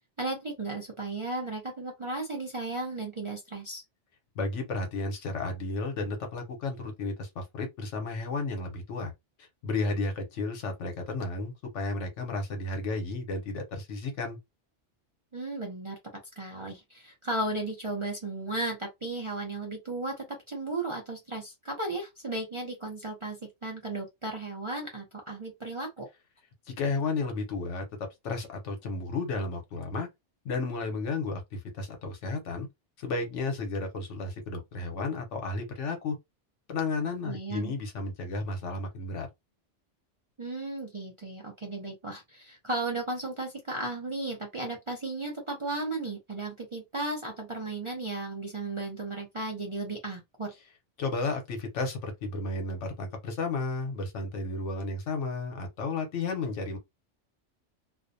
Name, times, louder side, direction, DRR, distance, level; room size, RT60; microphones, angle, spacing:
voice 1, 0.2-3.8 15.3-16.0 16.4-26.1 37.2-37.7 40.4-50.5, right 2 dB, 40° right, 0.4 m, -35 dB
voice 2, 4.3-9.1 9.4-14.4 26.7-27.8 28.2-30.1 30.4-32.7 33.0-36.2 36.7-39.3 51.0-56.8, left 3 dB, 85° left, 1.1 m, -33 dB
2.5 x 2.1 x 2.5 m
omnidirectional pair, 1.2 m